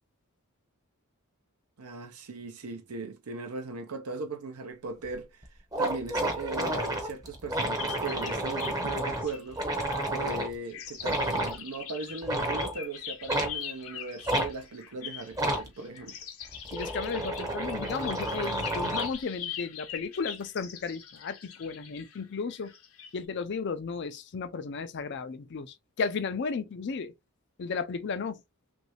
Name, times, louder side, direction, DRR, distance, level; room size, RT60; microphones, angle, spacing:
voice 1, 1.8-5.4 5.8-9.7 10.1-16.2, right 3 dB, 85° right, 0.7 m, -38 dB
sound 1, 5.1-5.2 5.4-5.5 5.7-10.5 11.0-11.6 12.2-12.8 13.3-13.5 14.3-14.5 15.3-15.7 16.4-19.2, right 1 dB, 15° right, 0.7 m, -31 dB
sound 2, 7.8-8.8 9.2-10.4 10.6-23.1, left 9 dB, 70° left, 0.8 m, -42 dB
voice 2, 16.7-22.7 23.1-27.1 27.6-28.4, left 5 dB, 50° left, 0.4 m, -34 dB
3.1 x 2.5 x 3.1 m
head